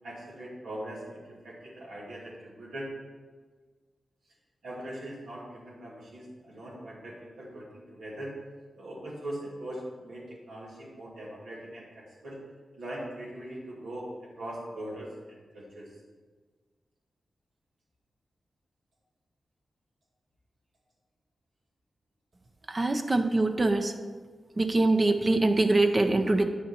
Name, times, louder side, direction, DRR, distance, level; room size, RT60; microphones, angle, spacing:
voice 1, 0.0-2.9 4.6-8.3 8.7-12.4 12.8-15.1 15.5-15.9, right 1 dB, 90° right, -5 dB, 2.6 m, -41 dB
voice 2, 22.7-23.9 24.6-26.4, right 2 dB, 40° right, 5 dB, 0.8 m, -24 dB
8.9 x 6.6 x 4.4 m, 1.4 s
cardioid pair, 50°, 0 cm